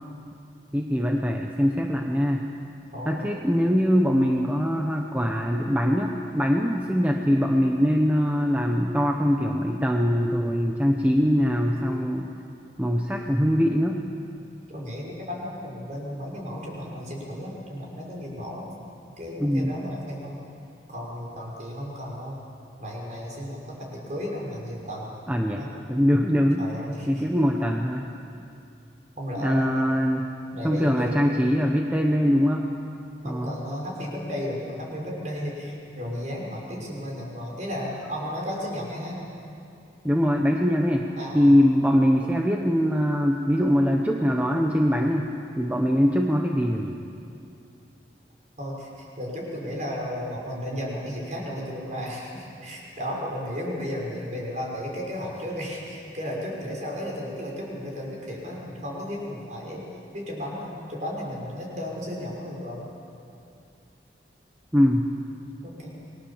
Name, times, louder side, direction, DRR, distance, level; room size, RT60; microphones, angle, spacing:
voice 1, 0.7-2.4 3.0-12.3 12.8-14.0 19.4-19.7 25.3-25.6 25.9-26.6 27.1-28.1 29.4-30.2 30.6-32.7 33.2-33.5 40.0-41.1 41.3-47.0 64.7-65.1, equal, 10° right, 1 dB, 1.1 m, -22 dB
voice 2, 2.9-3.3 14.7-18.7 19.2-20.4 20.9-22.4 22.8-25.1 25.6-25.7 26.6-27.2 29.2-29.9 30.5-31.3 33.2-39.2 41.2-41.5 45.8-46.0 48.6-59.8 60.1-62.9 65.6-66.0, equal, 40° right, -2 dB, 6.0 m, -34 dB
28.5 x 22.0 x 7.3 m, 2.6 s
head